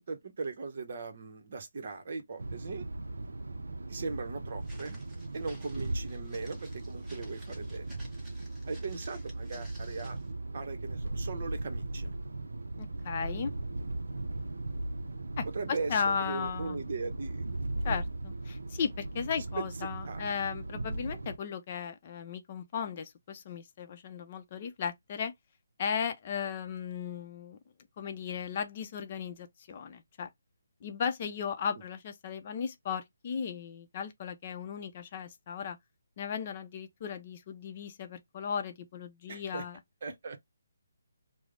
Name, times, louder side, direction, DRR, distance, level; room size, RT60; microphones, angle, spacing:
voice 1, 0.0-2.9 3.9-5.0 5.3-7.9 8.7-10.2 10.5-12.2 15.5-17.5 17.9-18.0 20.1-20.3 39.3-39.7 40.0-40.4, right 4 dB, 50° right, 0.8 m, -39 dB
sound 1, 2.4-21.4, right 2 dB, 85° right, 0.5 m, -38 dB
Walk footsteps, 4.6-10.3, right 1 dB, 10° right, 0.9 m, -56 dB
voice 2, 12.8-13.5 15.4-16.8 17.8-25.3 25.8-27.6 28.0-30.3 30.8-35.8 36.2-39.8, left 7 dB, 35° left, 0.5 m, -36 dB
3.0 x 2.0 x 3.7 m
hypercardioid pair, 160°, 0 cm